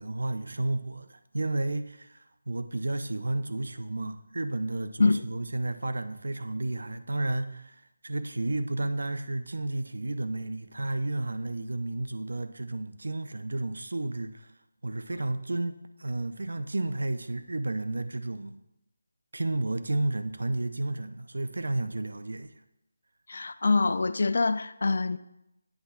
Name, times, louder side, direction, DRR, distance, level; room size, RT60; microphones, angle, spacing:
voice 1, 0.0-14.5 14.8-18.6 19.3-22.5, right 2 dB, 80° right, 11 dB, 0.5 m, -32 dB
voice 2, 23.3-25.2, left 3 dB, 60° left, 14 dB, 0.3 m, -25 dB
8.0 x 3.3 x 5.7 m, 0.86 s
figure-of-eight pair, 170°, 0 cm